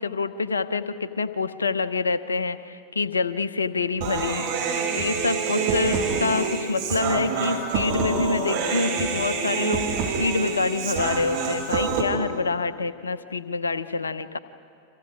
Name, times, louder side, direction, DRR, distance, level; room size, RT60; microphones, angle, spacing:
voice 1, 0.0-4.5 4.9-14.4, left 4 dB, 75° left, 14 dB, 0.9 m, -26 dB
Human voice, 4.0-12.0, right 5 dB, 50° right, 4.7 m, -26 dB
30.0 x 26.0 x 5.1 m, 2.3 s
figure-of-eight pair, 90°, 0 cm